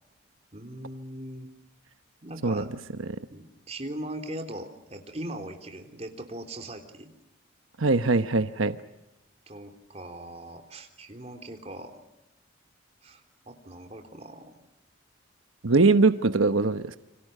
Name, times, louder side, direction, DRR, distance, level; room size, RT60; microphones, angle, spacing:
voice 1, 0.5-1.5 2.2-2.8 3.3-7.1 9.5-12.0 13.0-13.2 13.5-14.6, right 1 dB, 30° right, 4 dB, 3.4 m, -40 dB
voice 2, 7.8-8.8 15.6-17.0, right 3 dB, 85° right, 10 dB, 1.1 m, -22 dB
29.5 x 26.0 x 6.7 m, 0.98 s
head